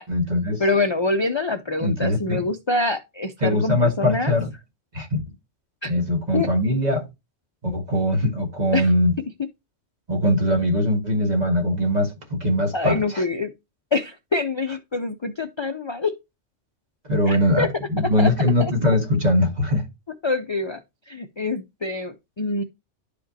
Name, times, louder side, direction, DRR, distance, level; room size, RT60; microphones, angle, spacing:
voice 1, 0.1-0.6 1.8-2.4 3.4-4.5 4.9-5.2 5.8-7.1 7.6-9.2 10.1-13.2 17.1-19.9, left 1 dB, 35° right, 1.7 m, -21 dB
voice 2, 0.6-4.4 5.8-6.0 6.3-6.5 8.7-8.9 12.7-13.5 13.9-16.1 17.3-17.7 18.2-18.3 18.6-18.7 20.2-20.8 21.1-22.6, left 3 dB, 35° left, 0.5 m, -25 dB
11.0 x 5.1 x 2.7 m
omnidirectional pair, 1.3 m